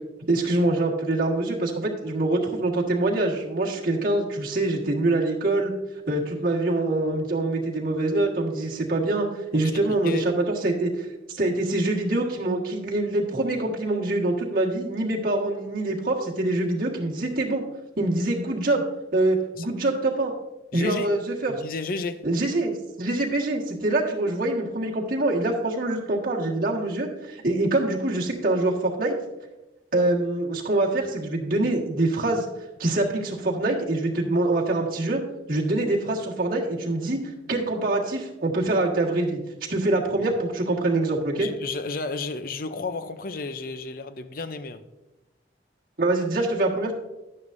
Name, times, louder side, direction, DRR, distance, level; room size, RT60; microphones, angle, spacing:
voice 1, 0.3-5.7 6.1-9.3 9.5-10.2 10.6-17.6 18.0-18.8 19.1-20.3 20.7-21.5 22.2-29.1 29.9-32.4 32.8-35.2 35.5-37.2 37.5-39.4 39.7-41.5 46.0-46.9, right 2 dB, 50° right, 1.6 m, -24 dB
voice 2, 9.5-10.3 19.6-19.7 20.7-21.1 21.5-22.2 40.2-40.3 41.4-44.8, left 3 dB, 50° left, 0.5 m, -32 dB
11.0 x 9.4 x 2.6 m
head